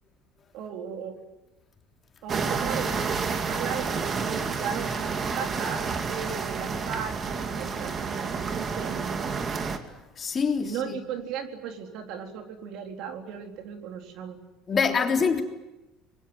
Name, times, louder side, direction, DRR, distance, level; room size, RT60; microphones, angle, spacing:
voice 1, 0.5-1.2 2.2-9.3 10.6-14.4 14.7-15.2, right 7 dB, 65° right, 3.9 m, -36 dB
sound 1, 2.3-9.8, right 5 dB, 35° right, 2.6 m, -30 dB
voice 2, 10.2-11.0 14.7-15.4, left 6 dB, 35° left, 3.3 m, -25 dB
25.0 x 21.5 x 9.7 m
supercardioid pair, 100°, 0 cm